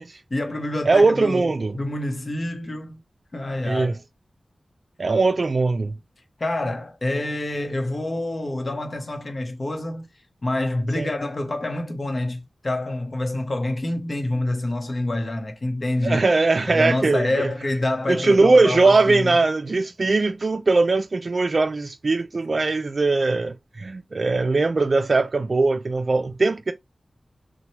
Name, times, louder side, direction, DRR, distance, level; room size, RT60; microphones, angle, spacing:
voice 1, 0.3-3.0 3.3-4.0 6.4-10.1 10.4-16.3 16.7-19.3, left 1 dB, 50° left, 0.8 m, -27 dB
voice 2, 0.9-1.8 3.6-3.9 5.0-5.9 11.0-11.1 16.0-17.5 18.1-26.7, right 3 dB, 60° right, 0.3 m, -20 dB
3.0 x 2.1 x 2.7 m
cardioid pair, 45°, 0 cm